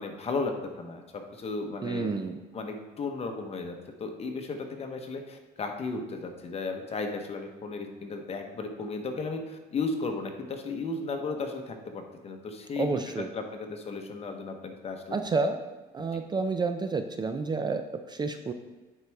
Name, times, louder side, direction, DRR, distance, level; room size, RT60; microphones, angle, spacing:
voice 1, 0.0-2.1 2.5-15.2 16.1-16.2, left 3 dB, 35° left, 4 dB, 1.0 m, -35 dB
voice 2, 1.8-2.4 12.8-13.3 15.1-15.6 15.9-18.5, right 4 dB, 25° right, 8 dB, 0.4 m, -30 dB
9.1 x 4.7 x 3.5 m, 1.2 s
cardioid pair, 110°, 17 cm